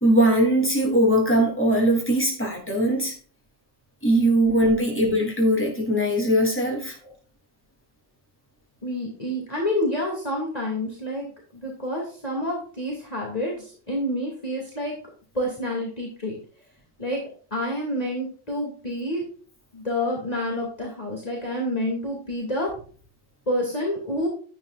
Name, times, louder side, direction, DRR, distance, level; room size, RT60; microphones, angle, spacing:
voice 1, 0.0-3.1 4.0-7.0, right 1 dB, 10° left, -1 dB, 3.5 m, -20 dB
voice 2, 8.8-11.3 11.6-14.9 15.3-16.4 17.0-17.2 17.5-19.2 19.7-22.7 23.5-24.3, left 1 dB, 30° left, -2 dB, 2.7 m, -28 dB
10.5 x 8.8 x 2.5 m, 0.42 s
omnidirectional pair, 1.2 m